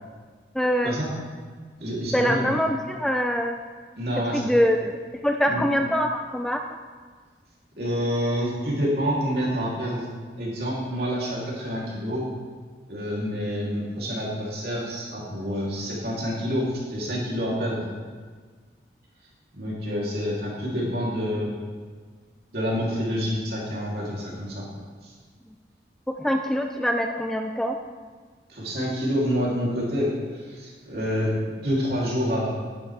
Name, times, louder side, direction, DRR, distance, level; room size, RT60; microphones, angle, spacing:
voice 1, 0.5-0.9 2.1-3.6 4.3-6.6 26.2-27.8, equal, 5° left, 4 dB, 0.3 m, -24 dB
voice 2, 1.8-2.5 4.0-4.5 5.5-5.6 7.8-10.0 10.4-12.3 12.9-17.8 19.5-21.5 22.5-24.7 25.0-25.1 28.5-32.5, equal, 65° right, -5 dB, 3.0 m, -27 dB
10.5 x 9.6 x 3.4 m, 1.5 s
head